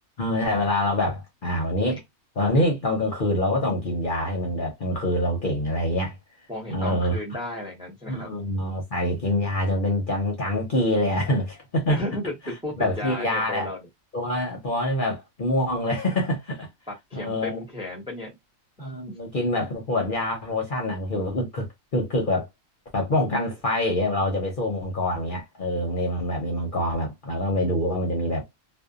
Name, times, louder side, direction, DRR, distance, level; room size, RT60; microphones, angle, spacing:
voice 1, 0.2-2.0 2.4-6.2 6.7-7.2 8.1-12.1 12.8-13.7 14.1-16.7 17.1-17.6 18.8-21.7 21.9-22.5 22.9-28.4, left 1 dB, 45° left, 0.8 m, -25 dB
voice 2, 6.5-8.3 11.9-13.8 16.9-18.3, left 1 dB, 5° right, 0.7 m, -34 dB
2.6 x 2.1 x 2.4 m
omnidirectional pair, 1.4 m